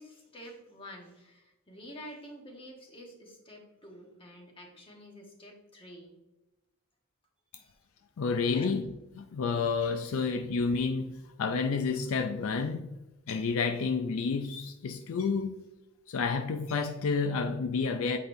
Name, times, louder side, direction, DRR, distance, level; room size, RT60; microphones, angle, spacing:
voice 1, 0.0-6.1 7.6-7.7 8.5-8.7, equal, 25° left, 1.3 m, -49 dB
voice 2, 8.2-13.0 13.3-15.7 16.1-18.2, left 4 dB, 70° left, 0.4 m, -30 dB
7.9 x 5.1 x 2.7 m
head